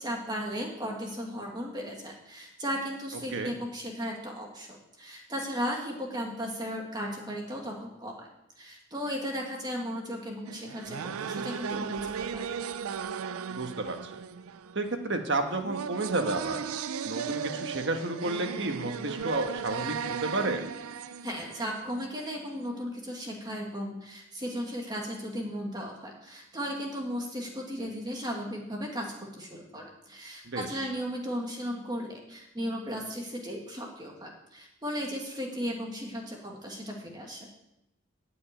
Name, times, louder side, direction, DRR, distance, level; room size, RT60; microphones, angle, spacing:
voice 1, 0.0-8.3 8.6-12.5 21.2-37.5, equal, 20° right, 0 dB, 2.0 m, -36 dB
sound 1, 10.5-22.3, right 6 dB, 85° right, 0.5 m, -36 dB
voice 2, 13.5-14.1 14.7-16.6 17.0-20.6 30.4-30.9, right 2 dB, 55° right, 5 dB, 1.4 m, -31 dB
13.5 x 5.5 x 9.0 m, 0.88 s
head